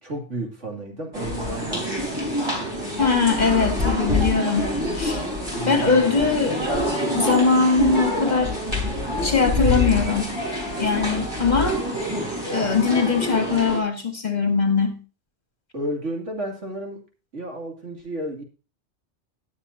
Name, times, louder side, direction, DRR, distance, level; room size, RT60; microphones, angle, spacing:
voice 1, 0.0-1.9 5.5-6.6 15.7-17.1 17.3-18.4, right 1 dB, 80° right, 2 dB, 3.0 m, -32 dB
sound 1, 1.1-13.8, left 1 dB, 20° right, 3.5 m, -26 dB
voice 2, 3.0-5.2 5.6-6.6 7.1-8.6 9.2-10.4 10.8-11.8 12.5-15.0, left 5 dB, 35° left, 5 dB, 1.9 m, -21 dB
19.5 x 7.1 x 2.8 m, 0.33 s
omnidirectional pair, 1.2 m